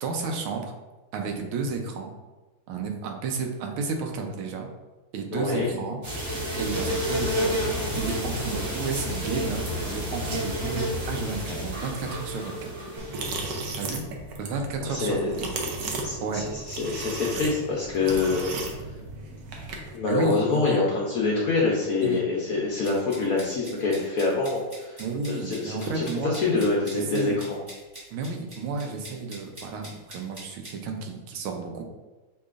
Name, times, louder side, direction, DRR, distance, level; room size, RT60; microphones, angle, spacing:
voice 1, 0.0-0.6 1.1-2.1 2.7-4.7 5.1-6.0 6.6-7.6 7.9-12.9 13.8-14.0 14.4-15.5 16.2-16.5 20.1-20.8 22.0-22.2 25.0-27.4 28.1-31.8, right 4 dB, 85° right, 3 dB, 1.5 m, -32 dB
voice 2, 5.3-5.7 14.9-15.5 16.0-18.5 19.9-27.6, left 3 dB, 75° left, -4 dB, 0.8 m, -26 dB
sound 1, 6.0-13.6, equal, 50° right, 1.8 m, -30 dB
sound 2, 13.0-20.0, right 2 dB, 70° right, 0.9 m, -35 dB
sound 3, 22.8-30.7, right 1 dB, 30° right, 1.6 m, -44 dB
6.4 x 2.9 x 2.4 m, 1.2 s
omnidirectional pair, 2.3 m